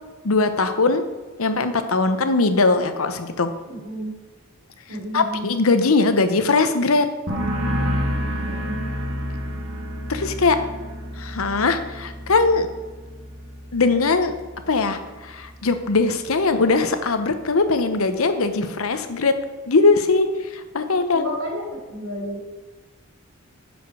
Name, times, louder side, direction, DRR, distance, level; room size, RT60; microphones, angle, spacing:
voice 1, 0.2-1.0 1.4-3.5 5.1-7.1 10.1-10.6 11.2-12.7 13.7-14.3 14.7-19.3 19.7-21.3, left 3 dB, 80° left, 9 dB, 0.9 m, -20 dB
voice 2, 3.7-4.1 4.9-5.4 8.6-8.9 21.1-22.4, equal, 90° right, -1 dB, 3.3 m, -31 dB
sound 1, 7.3-14.7 15.0-15.5, equal, 65° right, 2.1 m, -29 dB
10.0 x 5.1 x 6.2 m, 1.3 s
head